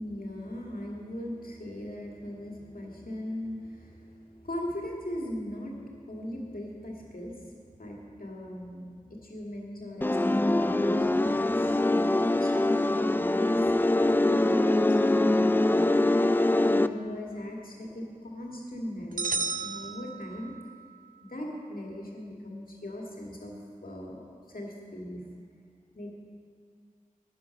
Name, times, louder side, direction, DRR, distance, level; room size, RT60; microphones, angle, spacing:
voice 1, 0.0-13.7 14.2-16.1 16.6-20.5 21.3-23.5 23.8-25.2 25.9-26.3, left 1 dB, 85° left, -2 dB, 2.0 m, -39 dB
sound 1, 10.0-16.9, left 2 dB, 15° left, 0.3 m, -24 dB
sound 2, 19.2-20.7, right 4 dB, 75° right, 0.5 m, -33 dB
11.0 x 9.8 x 5.8 m, 2.1 s
wide cardioid pair, 45°, 14 cm